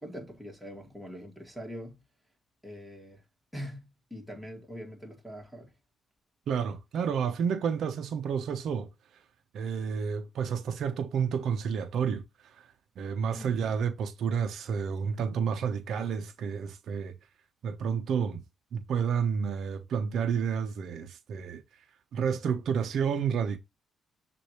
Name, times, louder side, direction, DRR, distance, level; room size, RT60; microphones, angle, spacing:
voice 1, 0.0-2.0 2.6-3.2 3.5-5.7 13.3-13.6, equal, 5° right, 2.3 m, -43 dB
voice 2, 6.5-8.9 9.5-12.7 13.0-17.1 17.6-18.4 18.7-21.6 22.1-23.6, right 7 dB, 70° right, 0.8 m, -30 dB
6.3 x 2.7 x 3.1 m
cardioid pair, 90°, 0 cm